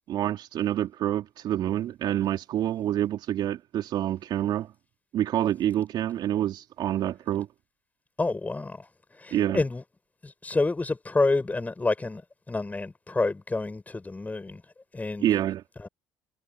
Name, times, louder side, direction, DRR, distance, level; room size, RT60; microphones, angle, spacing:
voice 1, 0.1-4.7 5.1-7.5 9.3-9.6 15.2-15.6, right 12 dB, 55° right, 3.3 m, -27 dB
voice 2, 8.2-9.8 10.2-12.2 12.5-14.6 14.9-15.4 15.8-15.9, left 3 dB, 20° left, 7.6 m, -28 dB
hypercardioid pair, 70°, 9 cm